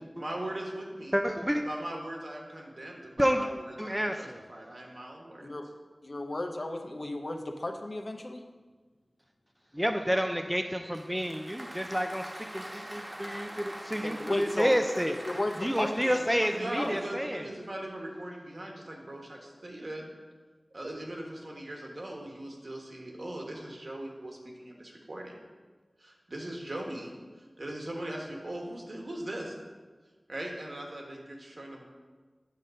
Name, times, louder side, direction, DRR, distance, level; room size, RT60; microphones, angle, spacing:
voice 1, 0.1-1.2 1.5-5.5 16.5-20.1 20.7-25.4 26.0-29.5 30.3-31.8, right 1 dB, 65° right, 0 dB, 1.4 m, -40 dB
voice 2, 1.1-1.6 3.2-3.5 3.8-4.4 9.7-15.2 15.6-17.4, equal, 5° right, 5 dB, 0.4 m, -29 dB
voice 3, 6.0-8.4 14.0-14.8 15.1-16.5 16.7-16.9, left 1 dB, 60° left, 4 dB, 0.8 m, -35 dB
Applause, 10.9-17.3, right 1 dB, 40° right, 1.2 m, -44 dB
8.7 x 3.7 x 6.4 m, 1.4 s
wide cardioid pair, 55°, 0 cm